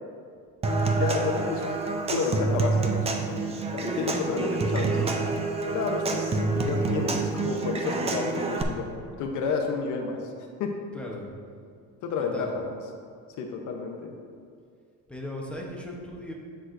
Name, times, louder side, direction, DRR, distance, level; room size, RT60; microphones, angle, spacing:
Human voice / Acoustic guitar / Percussion, 0.6-8.6, right 3 dB, 20° right, 0.4 m, -27 dB
voice 1, 0.9-1.7 2.1-5.0 5.7-8.9 9.2-10.3 10.6-10.7 12.0-12.9 13.4-14.1, left 5 dB, 60° left, 2 dB, 0.8 m, -31 dB
voice 2, 4.0-5.1 11.0-11.2 12.3-12.5 15.1-16.3, equal, 5° left, -2 dB, 0.8 m, -37 dB
9.9 x 6.1 x 2.5 m, 2.3 s
cardioid pair, 150°, 34 cm